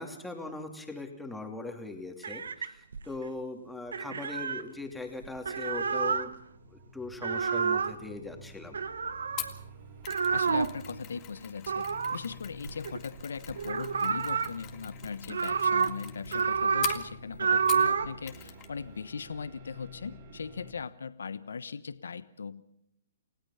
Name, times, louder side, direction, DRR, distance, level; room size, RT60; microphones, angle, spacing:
voice 1, 0.0-6.3 6.7-8.8, left 3 dB, 5° left, 3 dB, 2.8 m, -40 dB
sound 1, 2.2-3.3 3.9-4.6 5.2-6.3 7.1-8.0 8.7-9.5 10.1-10.8 11.7-13.2 13.5-14.5 15.0-15.9 16.2-17.0 17.3-18.1, right 6 dB, 75° right, 1.3 m, -29 dB
sound 2, 4.6-20.7, left 1 dB, 50° right, 5.8 m, -50 dB
Mechanisms, 9.4-18.0 18.3-18.7 19.0-19.1, left 14 dB, 25° left, 1.9 m, -44 dB
voice 2, 10.3-22.6, left 5 dB, 80° left, 14 dB, 1.1 m, -39 dB
29.5 x 17.0 x 5.8 m, 0.75 s
hypercardioid pair, 135°, 0 cm